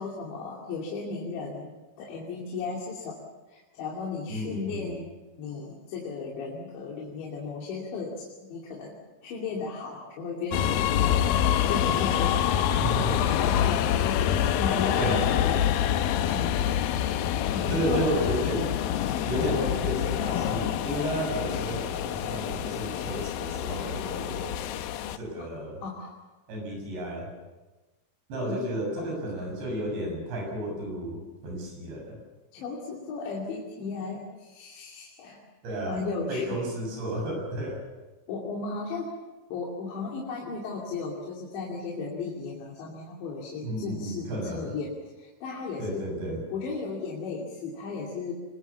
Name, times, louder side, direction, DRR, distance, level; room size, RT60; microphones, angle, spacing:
voice 1, 0.0-3.2 3.5-5.1 5.4-8.9 9.2-11.2 11.7-15.7 16.3-16.5 17.5-18.0 18.5-18.7 25.8-26.2 28.4-28.6 29.0-29.5 32.5-35.4 35.8-36.6 38.3-39.1 39.5-46.0 46.5-48.3, left 4 dB, 70° left, -3 dB, 4.9 m, -35 dB
voice 2, 4.3-4.9 12.8-13.2 15.0-15.3 17.7-18.6 19.3-24.6 25.1-25.8 26.5-27.3 28.3-32.2 35.6-36.0 36.3-37.8 43.6-44.7 45.8-46.4, right 1 dB, 65° right, 0 dB, 9.2 m, -32 dB
sound 1, 10.5-25.2, left 10 dB, 85° left, 2.1 m, -26 dB
25.5 x 22.5 x 7.1 m, 1.2 s
omnidirectional pair, 5.5 m